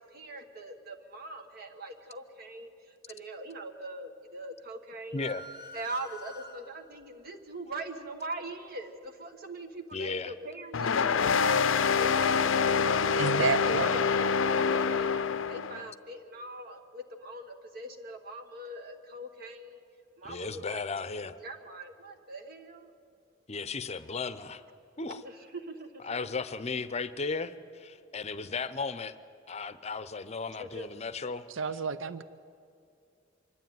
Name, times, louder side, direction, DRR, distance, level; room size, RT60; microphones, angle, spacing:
voice 1, 0.0-5.4 5.7-15.1 15.5-19.8 20.2-20.8 21.4-22.9 25.2-26.2 30.6-30.9, right 2 dB, 50° right, 4 dB, 1.3 m, -42 dB
voice 2, 5.1-5.4 9.9-10.3 20.2-21.3 23.5-24.6 25.0-25.2 26.0-29.1 29.5-31.5, left 4 dB, 35° left, 13 dB, 0.7 m, -35 dB
sound 1, 5.2-7.0, left 1 dB, 25° right, 2.2 m, -46 dB
sound 2, 10.7-15.8, left 6 dB, 80° left, 0.6 m, -26 dB
voice 3, 13.1-14.0 31.5-32.2, right 5 dB, 75° right, 14 dB, 0.6 m, -30 dB
25.0 x 12.0 x 9.3 m, 2.5 s
head